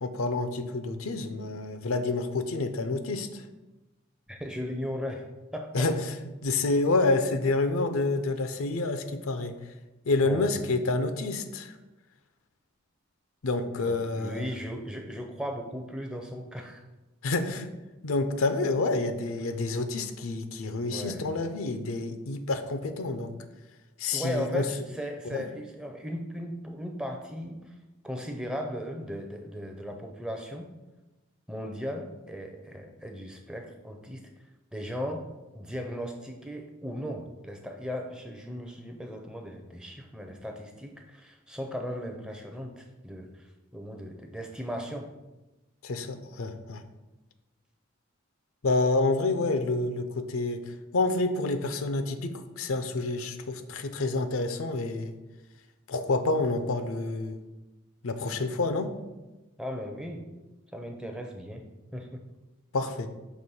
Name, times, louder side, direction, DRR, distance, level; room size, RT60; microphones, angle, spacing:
voice 1, 0.0-3.4 5.7-6.1 6.4-9.5 10.1-11.8 13.4-14.5 17.2-17.7 18.0-23.3 24.0-24.7 25.3-25.5 45.8-46.8 48.6-50.6 50.9-55.1 55.9-57.4 58.0-59.0 62.7-63.1, left 3 dB, 75° left, 9 dB, 0.5 m, -28 dB
voice 2, 4.3-5.3 5.5-5.9 10.2-10.5 13.9-16.8 20.9-21.3 24.1-27.7 28.0-30.7 31.5-34.2 34.7-35.3 35.5-45.1 59.6-60.3 60.7-61.6 61.9-62.2, equal, 5° right, 3 dB, 0.4 m, -37 dB
6.1 x 3.0 x 5.5 m, 1.1 s
head